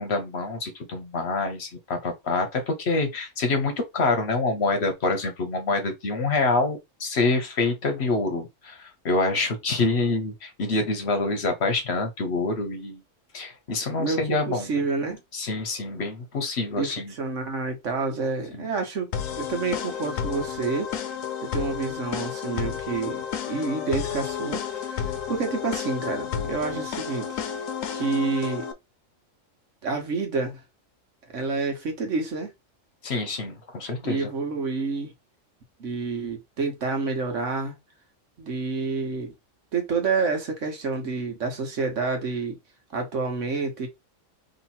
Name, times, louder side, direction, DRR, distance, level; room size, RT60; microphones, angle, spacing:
voice 1, 0.0-13.0 13.3-14.7 15.3-17.1 18.5-18.7 33.0-34.3, left 3 dB, 55° left, 1.1 m, -26 dB
voice 2, 13.9-15.2 16.8-20.9 21.5-27.4 27.9-28.7 29.8-30.6 31.3-32.5 34.0-35.1 35.8-37.8 38.4-39.3 39.7-42.6 42.9-43.9, right 4 dB, 70° right, 1.5 m, -28 dB
sound 1, 19.1-28.7, left 8 dB, 80° left, 1.1 m, -31 dB
3.1 x 3.0 x 4.2 m
omnidirectional pair, 1.4 m